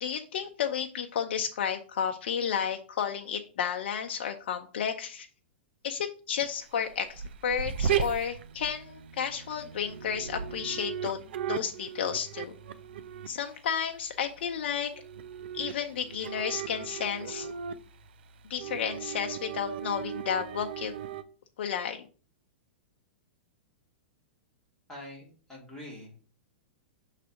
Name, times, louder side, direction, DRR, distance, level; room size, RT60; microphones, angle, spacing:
voice 1, 0.0-5.3 5.8-11.2 11.5-12.6 13.3-14.9 15.5-17.5 18.5-20.9 21.6-22.0, left 8 dB, 70° left, 4 dB, 0.7 m, -32 dB
sound 1, 6.4-21.2, right 8 dB, 70° right, 0.6 m, -37 dB
voice 2, 24.9-26.2, left 1 dB, 5° left, -4 dB, 2.8 m, -45 dB
6.2 x 3.3 x 5.7 m, 0.38 s
hypercardioid pair, 135°, 6 cm